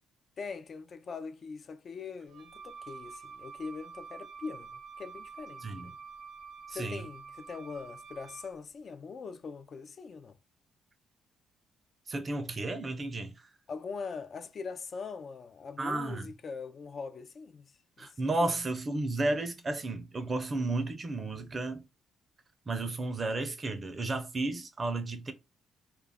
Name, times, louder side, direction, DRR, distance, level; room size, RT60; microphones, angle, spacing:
voice 1, 0.4-6.0 6.7-10.4 13.7-17.7 18.0-18.1 18.4-18.5, left 5 dB, 50° left, 0.3 m, -42 dB
Wind instrument woodwind instrument, 2.3-8.6, right 5 dB, 85° right, 0.6 m, -48 dB
voice 2, 5.6-5.9 6.7-7.0 12.1-13.3 15.8-16.3 18.0-21.9 22.7-25.3, right 2 dB, 35° right, 0.5 m, -33 dB
2.3 x 2.0 x 3.4 m
cardioid pair, 90°, 0 cm